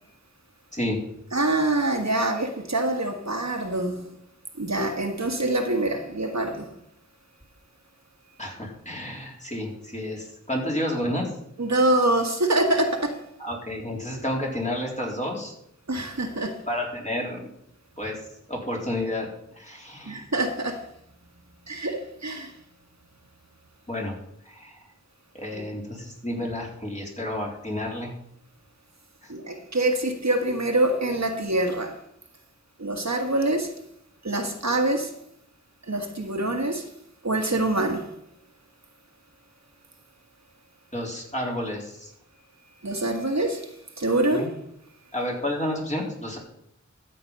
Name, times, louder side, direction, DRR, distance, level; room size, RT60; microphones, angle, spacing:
voice 1, 1.3-4.0 4.6-6.7 11.6-13.2 15.9-16.6 20.0-20.8 21.7-22.5 25.5-25.6 29.3-32.0 32.8-33.7 34.2-35.1 35.9-36.9 37.2-38.1 42.8-44.5, right 1 dB, 65° right, 4 dB, 1.6 m, -25 dB
voice 2, 8.4-11.3 13.4-15.5 16.7-17.5 18.0-18.2 18.5-19.3 19.5-20.2 23.9-24.2 24.5-24.8 25.3-28.1 29.2-29.3 40.9-42.1 44.3-44.5 45.1-46.4, left 1 dB, 25° left, -2 dB, 3.9 m, -30 dB
13.0 x 7.8 x 5.4 m, 0.75 s
wide cardioid pair, 40°, 30 cm